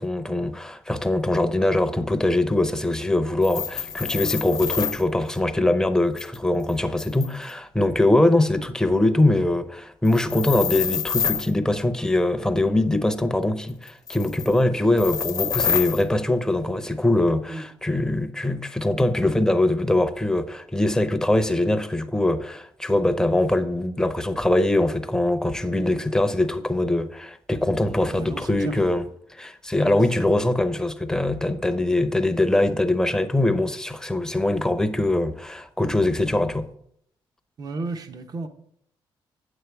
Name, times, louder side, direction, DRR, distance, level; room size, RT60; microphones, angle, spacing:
voice 1, 0.0-29.0 29.3-36.7, left 1 dB, 5° left, 0.7 m, -22 dB
sound 1, 3.4-5.0 6.2-7.5 10.1-11.5 13.9-14.5 15.0-16.0, left 7 dB, 45° left, 0.7 m, -27 dB
voice 2, 28.1-28.8 29.7-30.3 37.6-38.5, right 3 dB, 45° right, 0.9 m, -34 dB
8.7 x 8.0 x 3.4 m
cardioid pair, 105°, 9 cm